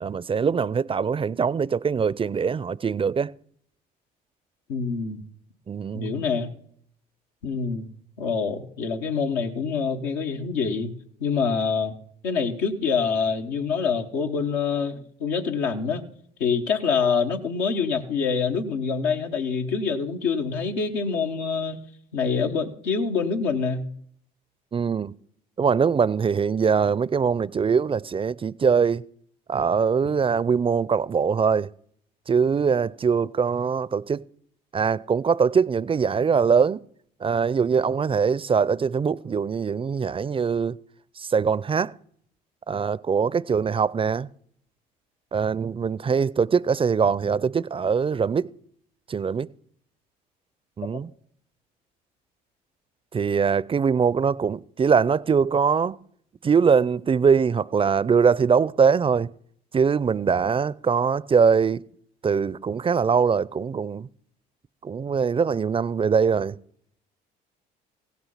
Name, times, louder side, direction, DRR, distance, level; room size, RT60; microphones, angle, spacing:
voice 1, 0.0-3.3 5.7-6.2 24.7-25.1 25.6-29.0 29.5-31.7 32.3-34.2 34.7-36.8 37.2-40.8 41.2-41.9 42.7-44.3 45.3-48.5 49.1-49.5 50.8-51.1 53.1-56.0 56.4-59.3 59.7-61.8 62.2-64.1 64.8-66.6, right 6 dB, 25° right, 0.5 m, -22 dB
voice 2, 4.7-5.2 5.9-6.5 7.4-7.9 8.2-10.9 11.2-12.0 12.2-16.0 16.4-21.8 22.1-23.9 50.9-51.0, left 5 dB, 80° left, 1.3 m, -26 dB
16.0 x 6.0 x 5.7 m
hypercardioid pair, 60°, 21 cm